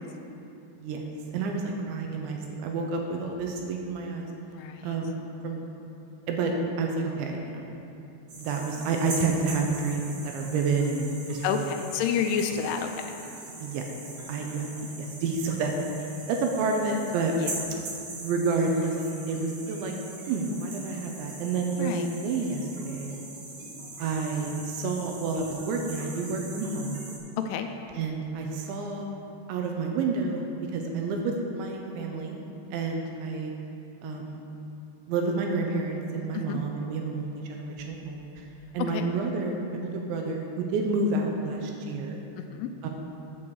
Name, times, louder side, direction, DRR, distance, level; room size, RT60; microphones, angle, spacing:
voice 1, 1.3-4.3 4.8-5.6 6.3-7.7 8.3-11.7 13.6-13.8 14.3-14.7 15.0-15.7 16.0-17.3 18.2-19.0 19.3-19.9 20.3-23.1 24.0-27.0 28.0-29.1 29.5-30.5 30.7-32.4 32.7-33.5 34.0-34.4 35.1-38.5 38.7-42.2 42.8-42.9, right 4 dB, 80° right, 2 dB, 2.9 m, -29 dB
voice 2, 4.5-5.0 11.4-13.1 17.4-17.6 21.8-22.1 27.4-27.7 36.3-36.6 38.9-39.1 42.4-42.7, left 7 dB, 85° left, 6 dB, 3.0 m, -29 dB
sound 1, 8.3-27.2, right 2 dB, 55° right, 1.6 m, -41 dB
13.5 x 8.0 x 4.8 m, 2.8 s
omnidirectional pair, 5.6 m